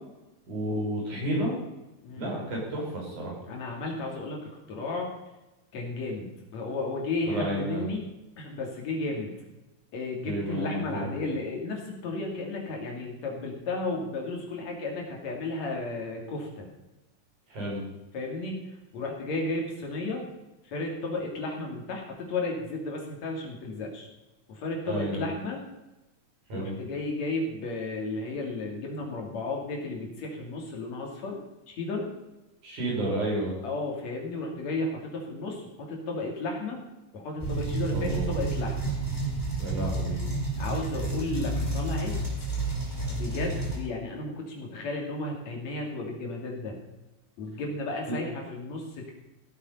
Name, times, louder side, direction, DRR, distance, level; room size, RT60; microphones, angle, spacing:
voice 1, 0.5-1.5 2.2-3.3 7.3-7.8 10.2-11.1 17.5-17.8 24.9-25.3 26.5-26.8 32.6-33.6 37.9-38.4 39.6-40.2 48.1-48.2, right 1 dB, 80° right, -4 dB, 7.2 m, -31 dB
voice 2, 3.5-5.1 5.7-8.1 8.4-9.4 9.9-16.7 18.1-18.7 18.9-20.2 20.7-24.1 24.5-25.6 26.5-31.4 31.7-32.1 33.6-36.8 37.1-39.0 40.6-42.2 43.1-46.8 47.4-49.1, left 2 dB, 65° left, 0 dB, 3.9 m, -33 dB
sound 1, 37.4-43.8, right 2 dB, 5° left, 4.6 m, -30 dB
16.5 x 8.5 x 5.6 m, 1.0 s
omnidirectional pair, 3.4 m